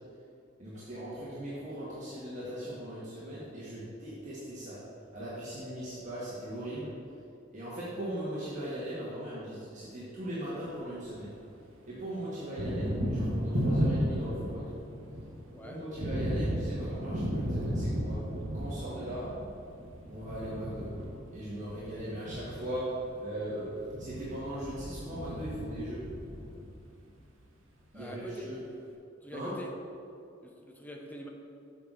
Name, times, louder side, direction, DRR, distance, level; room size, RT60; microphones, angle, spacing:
voice 1, 0.6-4.8 5.1-7.0 7.5-11.3 11.9-14.8 15.6-18.3 18.5-19.4 20.0-21.0 21.3-23.7 24.0-26.0 27.9-28.6 29.3-29.6, right 1 dB, 40° right, -9 dB, 1.6 m, -39 dB
Thunder, 10.3-11.5 11.8-27.1, equal, 85° right, 1.3 m, -34 dB
voice 2, 27.9-28.5 29.2-29.7 30.4-31.3, equal, 10° left, 1 dB, 0.8 m, -44 dB
8.4 x 6.2 x 3.9 m, 2.6 s
head